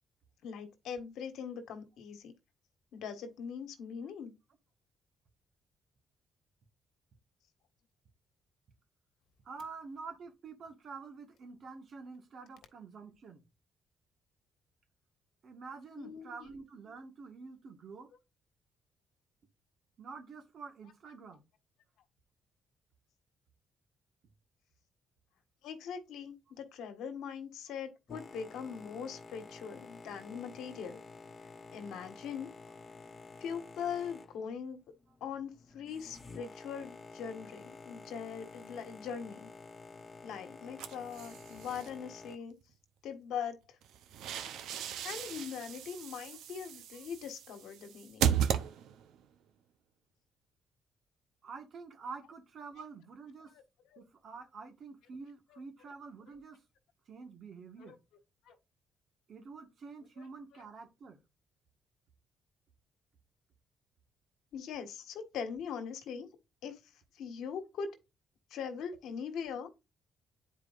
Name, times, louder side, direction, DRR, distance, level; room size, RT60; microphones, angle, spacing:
voice 1, 0.4-2.3 2.9-4.3 16.0-16.5 25.6-31.0 31.7-32.5 33.4-34.8 35.2-39.5 40.2-42.5 43.0-43.8 45.0-48.4 53.5-53.6 53.9-54.0 55.5-55.6 57.8-57.9 58.4-58.5 60.2-60.3 64.5-66.3 66.6-66.8 67.1-67.9 68.5-69.7, left 7 dB, 85° left, 1.5 m, -41 dB
voice 2, 9.4-13.4 15.4-18.1 20.0-21.4 51.4-53.5 54.0-56.6 57.1-58.0 59.3-61.2, right 4 dB, 60° right, 1.5 m, -47 dB
Boat Water vehicle, 28.1-42.4, left 3 dB, 35° left, 0.9 m, -51 dB
sound 1, 40.8-41.9 43.8-49.2, right 9 dB, 85° right, 0.7 m, -36 dB
10.5 x 4.7 x 2.5 m
cardioid pair, 90°, 0 cm